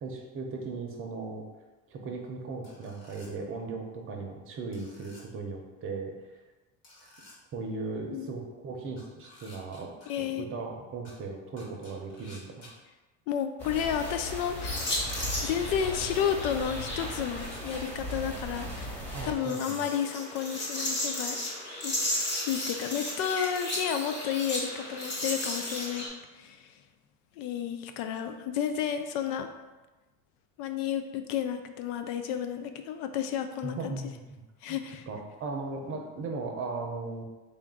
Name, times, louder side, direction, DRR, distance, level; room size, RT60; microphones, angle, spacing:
voice 1, 0.0-1.4 1.9-6.1 7.5-12.7 19.1-19.8 33.6-34.4 34.7-34.8 35.1-37.2, right 3 dB, 40° right, 2 dB, 0.7 m, -37 dB
sound 1, 2.6-3.3 4.7-5.2 6.8-7.3 9.0-10.1 11.0-11.1 11.6-12.7 14.2-14.3 14.7-15.1 15.5-15.9 17.4-17.8, left 2 dB, 50° left, 1.4 m, -53 dB
voice 2, 10.1-10.4 13.3-14.9 15.4-21.4 21.8-26.1 26.3-26.7 27.4-29.5 30.6-34.0 34.6-35.1, left 8 dB, 70° left, 7 dB, 0.5 m, -32 dB
sound 2, 13.6-19.3, equal, 5° left, 1.2 m, -38 dB
sound 3, 14.6-17.6 19.2-26.1, left 1 dB, 30° left, 1.4 m, -34 dB
3.6 x 2.5 x 3.7 m, 1.1 s
supercardioid pair, 115°, 33 cm